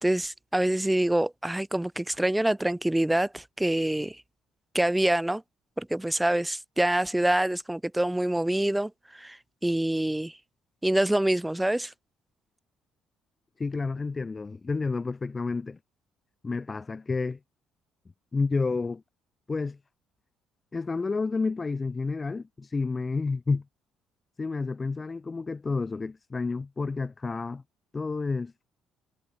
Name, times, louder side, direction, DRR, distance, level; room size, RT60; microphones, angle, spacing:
voice 1, 0.0-4.2 4.7-5.4 5.8-10.4 10.8-11.9, right 1 dB, 5° right, 3.4 m, -26 dB
voice 2, 13.6-15.8 16.4-17.4 18.3-19.0 19.5-19.8 20.7-23.6 24.4-27.6 27.9-28.5, left 4 dB, 25° left, 2.2 m, -30 dB
cardioid pair, 115°, 0 cm